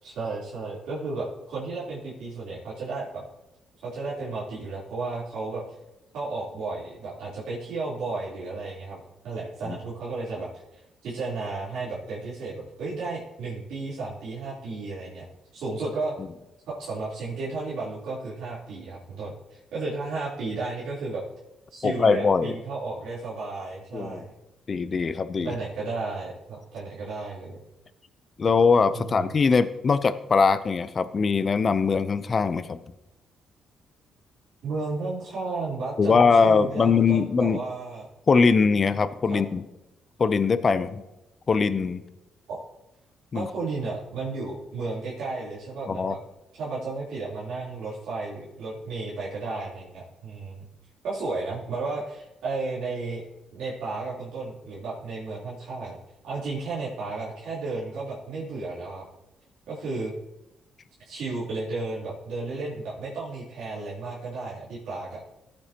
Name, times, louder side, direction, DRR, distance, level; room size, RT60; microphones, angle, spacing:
voice 1, 0.0-3.2 3.8-5.6 6.1-9.0 9.2-15.3 15.5-16.1 16.7-21.2 21.7-24.3 25.4-27.6 28.9-29.3 34.6-38.1 39.3-39.4 42.5-42.6 43.3-46.2 46.5-50.6 51.0-53.3 53.5-56.0 56.2-59.0 59.7-60.1 61.1-65.2, right 3 dB, 80° right, -8 dB, 3.5 m, -33 dB
voice 2, 21.8-22.5 23.9-24.2 24.7-25.5 28.4-32.8 36.0-37.6 38.3-39.6 40.2-41.0 41.5-42.0 43.3-43.5 45.9-46.2, left 5 dB, 40° left, 13 dB, 0.6 m, -21 dB
15.0 x 8.7 x 3.0 m, 0.95 s
cardioid pair, 90°, 0 cm